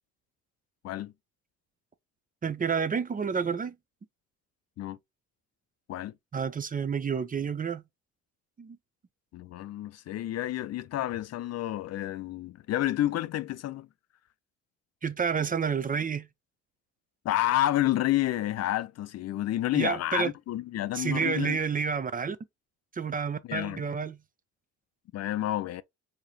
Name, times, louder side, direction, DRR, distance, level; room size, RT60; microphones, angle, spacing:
voice 1, 2.4-3.7 6.3-7.8 8.6-8.8 15.0-16.3 19.7-20.3 20.9-22.4 22.9-24.2, right 6 dB, 30° right, 0.5 m, -29 dB
voice 2, 9.3-13.9 17.2-21.6 23.5-23.8 25.1-25.8, left 14 dB, 55° left, 0.4 m, -29 dB
4.7 x 2.9 x 2.7 m
cardioid pair, 90°, 30 cm